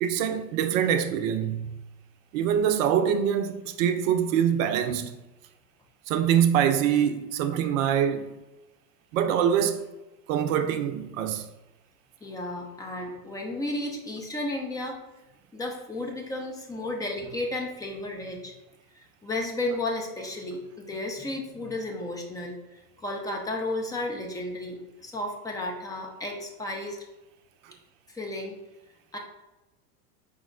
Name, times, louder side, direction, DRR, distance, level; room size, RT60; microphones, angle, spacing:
voice 1, 0.0-1.7 2.3-5.2 6.1-8.3 9.1-9.9 10.3-11.5, right 9 dB, 55° right, 0.6 m, -24 dB
voice 2, 12.2-15.0 15.5-18.5 18.9-22.6 23.0-27.0 28.1-28.6 29.1-29.2, left 2 dB, 10° left, 0.4 m, -33 dB
5.1 x 2.0 x 3.7 m
hypercardioid pair, 90°, 47 cm